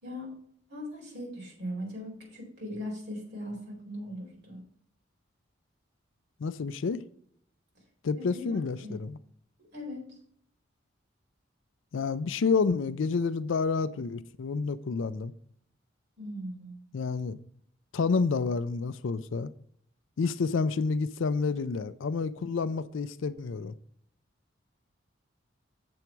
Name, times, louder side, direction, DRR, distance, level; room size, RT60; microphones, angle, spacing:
voice 1, 0.0-0.3 0.7-4.6 8.2-9.0 9.6-10.2 16.2-16.8, equal, 55° right, 4.3 m, -39 dB
voice 2, 6.4-7.0 8.0-9.2 11.9-15.3 16.9-17.4 17.9-19.5 20.2-23.7, left 4 dB, 75° left, 0.4 m, -29 dB
7.8 x 7.1 x 4.6 m
head